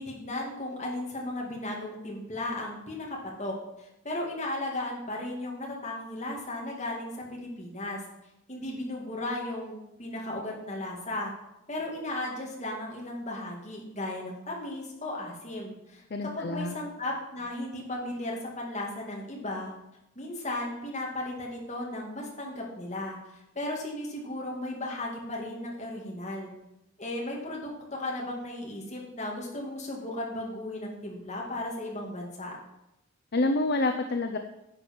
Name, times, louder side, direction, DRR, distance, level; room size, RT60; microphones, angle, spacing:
voice 1, 0.0-8.0 8.5-11.3 11.7-19.7 20.2-26.5 27.0-32.6, left 1 dB, 35° left, -2 dB, 2.4 m, -35 dB
voice 2, 16.1-16.7 33.3-34.4, left 2 dB, 50° left, 6 dB, 0.6 m, -27 dB
10.5 x 7.0 x 5.4 m, 0.88 s
head